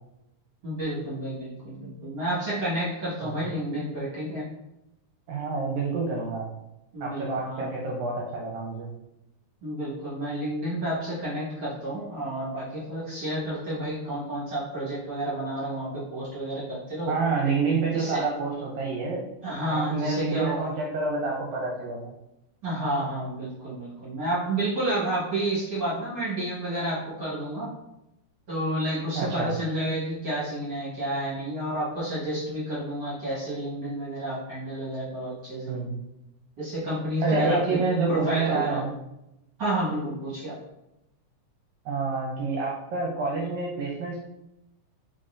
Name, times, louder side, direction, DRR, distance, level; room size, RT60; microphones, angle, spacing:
voice 1, 0.6-4.4 6.9-7.7 9.6-17.1 17.9-18.2 19.4-20.7 22.6-27.7 28.5-35.8 36.6-37.8 38.1-38.8 39.6-40.6, right 1 dB, 45° right, -10 dB, 1.5 m, -30 dB
voice 2, 5.3-6.5 7.0-8.9 17.1-19.2 19.7-22.1 29.1-29.5 35.7-36.0 37.2-38.9 41.9-44.2, right 4 dB, 75° right, -2 dB, 1.8 m, -28 dB
4.4 x 3.9 x 2.5 m, 0.88 s
omnidirectional pair, 3.7 m